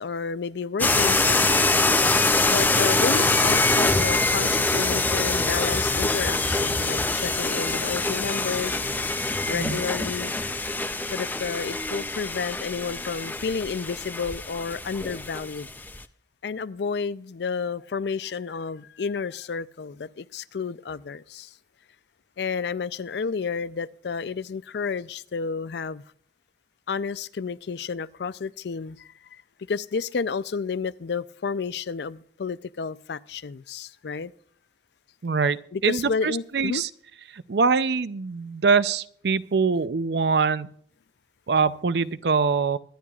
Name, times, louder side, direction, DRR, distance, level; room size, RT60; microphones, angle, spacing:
voice 1, 0.0-1.7 2.5-8.8 9.5-10.3 11.1-15.7 16.4-21.5 22.4-26.0 26.9-29.4 29.7-34.3 35.7-36.8, left 5 dB, 65° left, 0.4 m, -31 dB
sound 1, 0.8-16.0, left 2 dB, 10° left, 0.4 m, -24 dB
voice 2, 35.2-35.6 35.8-36.9 37.3-40.7 41.5-42.8, right 5 dB, 65° right, 0.5 m, -23 dB
24.0 x 10.5 x 2.4 m
head